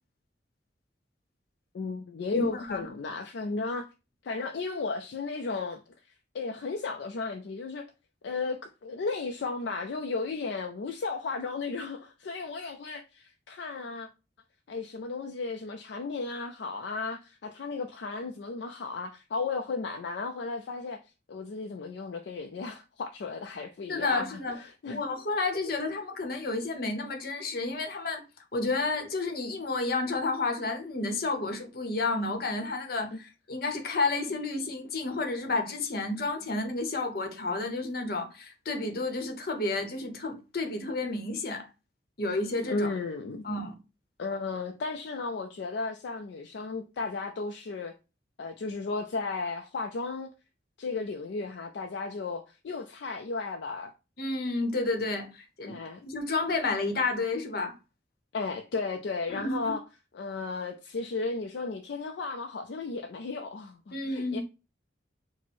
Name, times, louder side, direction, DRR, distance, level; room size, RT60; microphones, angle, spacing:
voice 1, 1.7-3.9 4.2-5.8 6.3-7.8 8.2-14.1 14.7-21.0 21.3-25.0 33.1-33.2 42.7-43.4 44.2-47.9 48.4-50.3 50.8-53.9 55.6-56.1 58.3-59.8 60.1-64.4, left 4 dB, 70° left, 0.4 m, -34 dB
voice 2, 2.3-2.8 23.9-24.6 24.9-28.2 28.5-41.7 42.2-42.9 43.4-43.8 54.2-55.8 56.0-57.7 59.3-59.7 63.9-64.4, left 3 dB, 55° left, 0.8 m, -31 dB
4.2 x 2.0 x 4.4 m
head